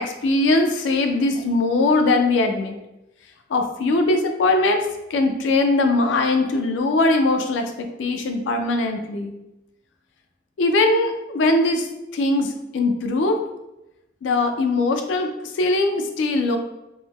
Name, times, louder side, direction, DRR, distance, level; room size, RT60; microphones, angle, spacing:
voice 1, 0.0-2.8 3.5-9.3 10.6-11.9 12.1-13.4 14.2-16.6, left 2 dB, 80° left, 5 dB, 0.4 m, -21 dB
3.7 x 2.0 x 2.9 m, 0.91 s
head